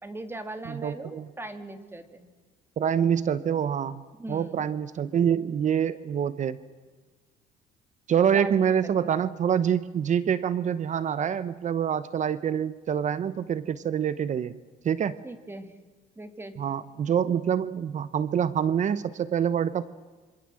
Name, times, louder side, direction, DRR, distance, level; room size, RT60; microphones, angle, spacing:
voice 1, 0.0-2.3 4.2-4.6 8.3-8.5 9.0-9.1 15.2-15.7 16.2-16.6, right 2 dB, 15° right, 9 dB, 2.5 m, -39 dB
voice 2, 0.7-1.2 2.8-4.0 4.3-6.6 8.1-14.6 14.8-15.2 16.6-19.8, right 8 dB, 45° right, 16 dB, 0.9 m, -26 dB
27.0 x 25.0 x 7.7 m, 1.3 s
cardioid pair, 110°, 17 cm